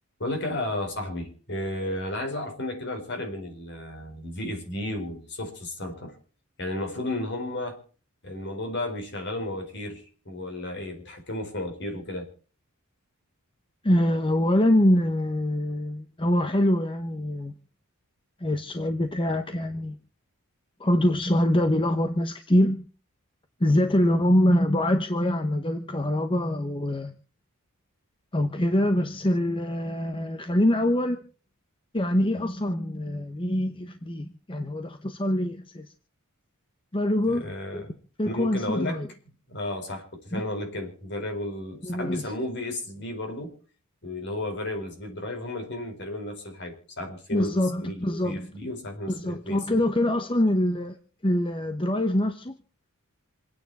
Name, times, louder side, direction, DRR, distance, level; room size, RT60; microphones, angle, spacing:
voice 1, 0.2-6.1 6.6-7.8 8.2-12.3 37.2-38.0 38.2-39.0 39.5-43.5 44.0-49.6, left 1 dB, 50° left, 4 dB, 4.8 m, -33 dB
voice 2, 13.8-17.5 18.4-20.0 20.8-22.9 23.6-27.1 28.3-31.2 31.9-35.9 36.9-37.8 38.2-39.1 40.3-40.4 41.8-42.3 47.3-48.5 49.1-52.6, left 1 dB, 25° left, 7 dB, 1.0 m, -24 dB
27.5 x 9.5 x 4.2 m, 0.39 s
head